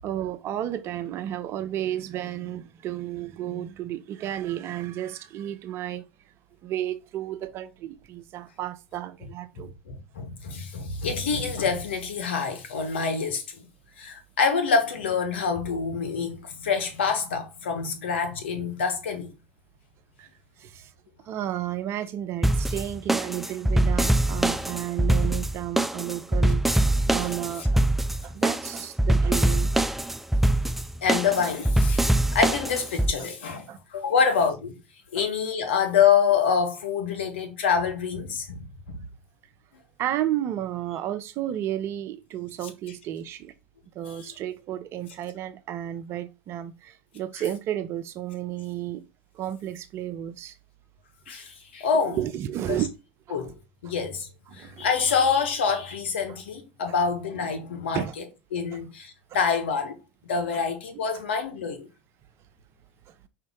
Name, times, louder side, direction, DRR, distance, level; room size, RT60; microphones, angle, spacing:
voice 1, 0.0-6.1 6.6-9.7 20.2-20.3 20.6-20.9 21.2-26.8 27.1-27.8 28.2-29.8 33.7-33.8 35.2-35.3 40.0-43.5 43.9-49.0 49.3-50.6 51.9-52.9 53.3-53.4 54.5-54.9 57.9-58.2 58.7-58.8 59.3-59.4 60.5-60.6 61.1-61.2 63.1-63.2, right 12 dB, 45° right, 0.6 m, -32 dB
voice 2, 9.5-13.7 14.0-19.3 31.0-34.7 35.1-38.6 38.9-39.0 44.1-44.3 51.3-52.2 52.7-52.8 53.3-53.5 53.8-58.0 58.5-59.9 60.2-61.9, left 6 dB, 70° left, 1.1 m, -26 dB
sound 1, 22.4-33.1, right 1 dB, 5° right, 0.3 m, -23 dB
5.2 x 2.8 x 3.6 m
figure-of-eight pair, 80°, 6 cm